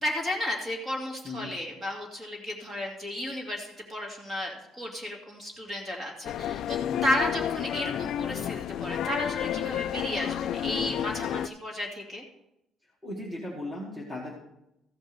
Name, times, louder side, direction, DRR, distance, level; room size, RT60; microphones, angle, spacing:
voice 1, 0.0-12.2, left 1 dB, 20° right, 0 dB, 2.3 m, -33 dB
sound 1, 6.2-11.5, left 10 dB, 55° left, 0.3 m, -31 dB
voice 2, 13.0-14.3, left 1 dB, 5° right, -4 dB, 1.7 m, -37 dB
14.5 x 5.3 x 6.7 m, 0.85 s
cardioid pair, 170°, 0 cm